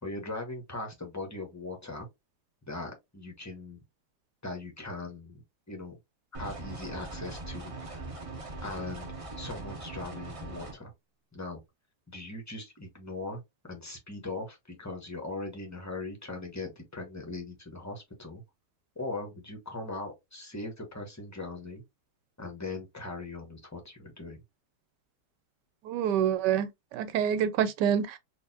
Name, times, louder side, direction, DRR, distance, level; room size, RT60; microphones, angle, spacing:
voice 1, 0.0-2.1 2.7-3.8 4.4-5.4 5.7-6.0 6.4-8.0 8.6-9.1 9.4-10.9 11.3-11.6 12.1-18.4 19.0-21.8 22.4-24.4, left 2 dB, 15° left, 0.6 m, -39 dB
sound 1, 6.3-10.7, right 2 dB, 40° right, 0.4 m, -41 dB
voice 2, 25.8-28.2, right 9 dB, 85° right, 1.2 m, -27 dB
4.0 x 2.5 x 2.7 m
omnidirectional pair, 1.8 m